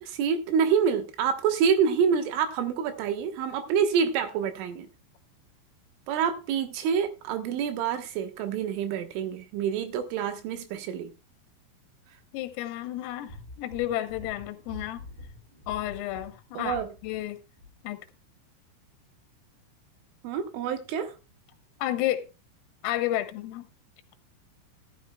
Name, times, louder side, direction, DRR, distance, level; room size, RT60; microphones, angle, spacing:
voice 1, 0.0-4.9 6.1-11.1 16.6-16.9 20.2-21.2, right 7 dB, 75° right, 3.7 m, -27 dB
voice 2, 12.3-15.1 15.7-17.4 17.8-18.0 21.8-22.3 22.8-23.7, left 14 dB, 85° left, 3.7 m, -31 dB
sound 1, 13.3-17.3 17.6-17.7, left 1 dB, 35° right, 9.3 m, -46 dB
15.0 x 12.5 x 2.3 m
omnidirectional pair, 5.8 m